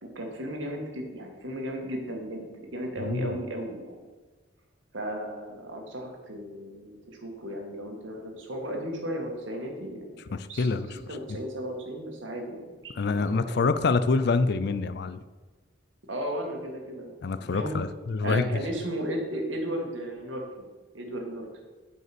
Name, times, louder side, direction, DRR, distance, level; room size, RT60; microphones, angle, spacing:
voice 1, 0.0-4.0 4.9-10.2 10.5-12.9 13.5-13.7 16.1-17.8 18.2-20.7 20.9-21.5, equal, 80° right, 2 dB, 1.9 m, -35 dB
voice 2, 3.0-3.4 10.3-11.0 11.3-11.4 13.0-15.2 17.2-18.6, left 4 dB, 60° left, 13 dB, 0.5 m, -26 dB
7.8 x 5.4 x 6.0 m, 1.3 s
head